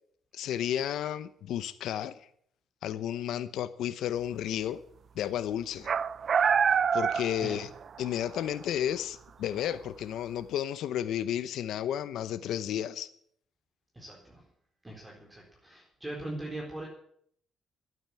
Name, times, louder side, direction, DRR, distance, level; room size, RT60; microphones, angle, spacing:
voice 1, 0.3-2.1 2.8-4.8 5.2-5.9 6.9-7.7 8.0-13.1, left 10 dB, 80° left, 13 dB, 0.8 m, -32 dB
sound 1, 5.9-8.1 8.3-8.4 9.6-9.7, right 7 dB, 50° right, 0.5 m, -26 dB
voice 2, 7.3-7.7 13.9-14.4 14.8-16.9, right 1 dB, 15° right, -1 dB, 4.0 m, -40 dB
12.5 x 9.1 x 9.7 m, 0.66 s
cardioid pair, 90°, 0 cm